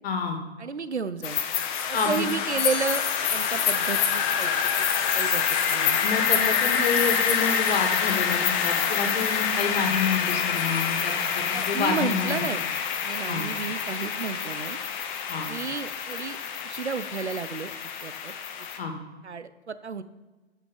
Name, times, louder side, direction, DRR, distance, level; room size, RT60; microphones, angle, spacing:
voice 1, 0.0-0.4 1.9-2.3 6.0-12.5 13.3-13.4 15.3-15.5 18.8-18.9, left 5 dB, 60° left, 4 dB, 2.4 m, -28 dB
voice 2, 0.6-1.4 1.9-3.0 3.3-6.0 11.5-12.6 13.0-14.8 15.5-16.4 16.6-17.7 18.0-18.3 19.2-20.0, right 5 dB, 90° right, 13 dB, 0.8 m, -32 dB
sound 1, 1.2-18.8, left 7 dB, 45° left, 1.4 m, -26 dB
13.0 x 6.0 x 5.4 m, 1.3 s
figure-of-eight pair, 110°, 33 cm